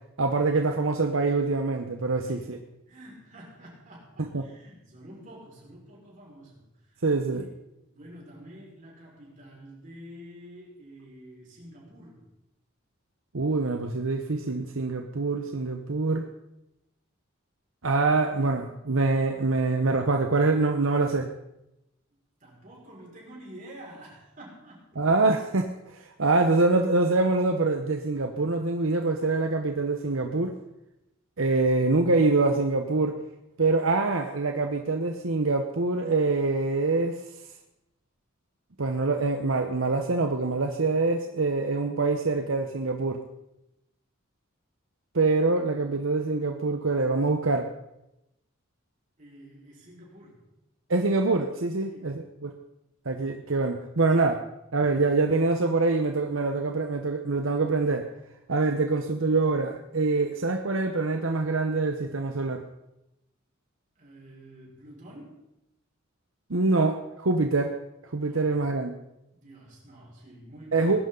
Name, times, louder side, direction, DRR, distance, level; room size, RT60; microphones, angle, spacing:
voice 1, 0.2-2.6 4.2-4.4 7.0-7.5 13.3-16.3 17.8-21.3 25.0-30.6 31.4-33.2 33.6-37.2 38.8-43.2 45.1-47.7 50.9-52.5 53.0-54.4 54.7-58.1 58.5-62.6 66.5-67.7 68.1-69.0 70.7-71.1, right 3 dB, 75° right, 5 dB, 1.0 m, -25 dB
voice 2, 2.9-7.0 7.4-12.3 22.4-25.0 49.2-50.5 51.8-52.2 64.0-65.5 68.2-68.6 69.3-70.9, equal, 40° right, -4 dB, 5.5 m, -48 dB
20.0 x 11.0 x 3.9 m, 0.88 s
head